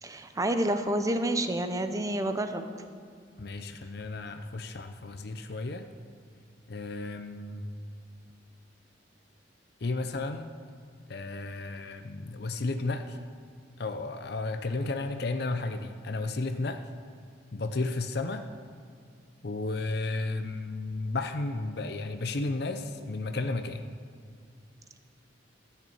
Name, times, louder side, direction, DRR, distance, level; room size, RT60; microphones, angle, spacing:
voice 1, 0.0-2.6, right 1 dB, 20° right, 8 dB, 0.7 m, -29 dB
voice 2, 3.4-5.9 6.7-7.7 9.8-10.5 11.1-13.2 13.8-16.8 17.5-18.5 19.4-23.9, left 3 dB, 60° left, 8 dB, 0.6 m, -33 dB
14.0 x 6.7 x 8.7 m, 2.2 s
head